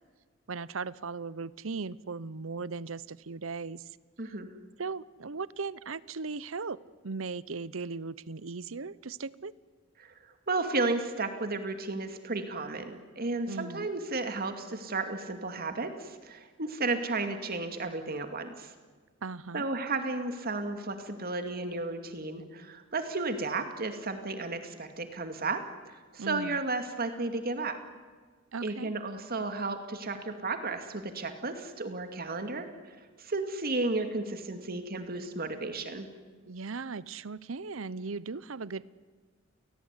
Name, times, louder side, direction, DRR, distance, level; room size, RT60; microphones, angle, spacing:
voice 1, 0.5-3.8 4.8-6.8 7.0-9.5 13.5-13.9 19.2-19.7 26.2-26.6 28.5-28.9 36.5-38.9, right 4 dB, 75° right, 19 dB, 0.8 m, -38 dB
voice 2, 4.2-4.5 10.0-10.1 10.5-18.7 19.5-25.6 26.1-27.8 28.6-36.1, right 3 dB, 50° right, 7 dB, 2.4 m, -33 dB
29.5 x 18.5 x 9.8 m, 1.5 s
head